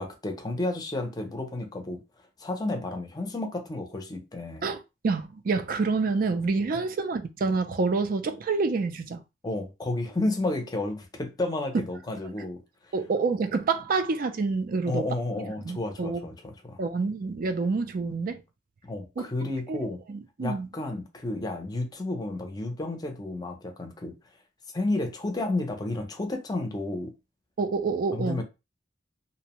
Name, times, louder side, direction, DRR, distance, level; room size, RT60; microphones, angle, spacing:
voice 1, 0.0-2.0 2.4-4.6 9.4-12.6 14.9-16.8 18.8-20.0 20.4-24.1 24.7-27.1 28.1-28.4, left 2 dB, 20° left, 0.5 m, -31 dB
voice 2, 4.6-9.2 12.9-15.1 15.6-16.2 16.8-18.4 19.2-19.3 19.7-19.8 20.1-20.7 27.6-28.4, right 4 dB, 50° right, 0.4 m, -27 dB
2.6 x 2.1 x 2.9 m
head